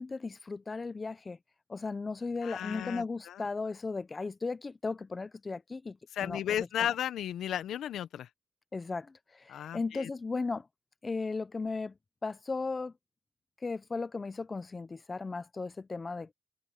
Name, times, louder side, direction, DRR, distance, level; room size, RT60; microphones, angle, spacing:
voice 1, 0.0-1.4 1.7-6.4 6.8-6.9 8.7-10.7 11.0-11.9 12.2-12.9 13.6-16.3, left 4 dB, 25° left, 0.8 m, -36 dB
voice 2, 2.4-3.5 6.1-8.3 9.5-10.1, left 10 dB, 70° left, 1.0 m, -34 dB
cardioid pair, 90°, 0 cm